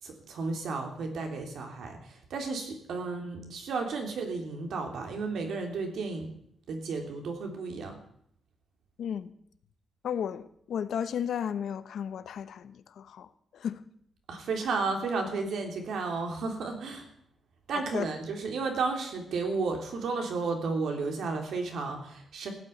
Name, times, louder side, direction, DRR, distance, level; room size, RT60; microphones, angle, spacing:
voice 1, 0.0-6.3 6.7-8.0 14.3-17.1 17.7-22.5, right 4 dB, 80° right, 3.6 m, -33 dB
voice 2, 9.0-9.3 10.0-13.8 17.9-18.0, left 8 dB, 75° left, 1.0 m, -34 dB
16.0 x 8.9 x 9.4 m
wide cardioid pair, 160°, 0 cm